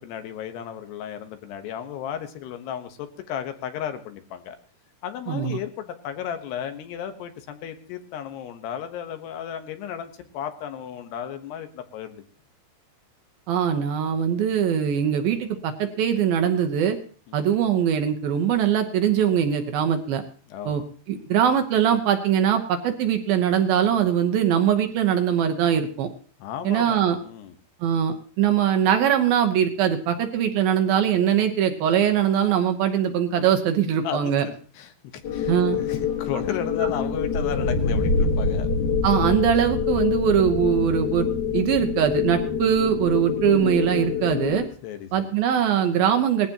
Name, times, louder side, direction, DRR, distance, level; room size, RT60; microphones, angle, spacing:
voice 1, 0.0-4.6 5.0-12.2 17.3-17.5 20.5-20.8 26.4-27.5 34.0-39.1 44.8-45.3, left 9 dB, 75° left, 8 dB, 3.2 m, -34 dB
voice 2, 5.3-5.6 13.5-17.0 17.3-20.2 20.7-20.8 21.1-26.1 26.6-27.2 27.8-34.5 35.5-35.8 39.0-41.3 41.5-44.6 45.1-46.5, right 9 dB, 70° right, 5 dB, 2.6 m, -22 dB
sound 1, 35.2-44.6, left 5 dB, 55° left, 2.5 m, -25 dB
19.5 x 15.0 x 2.9 m, 0.40 s
omnidirectional pair, 4.9 m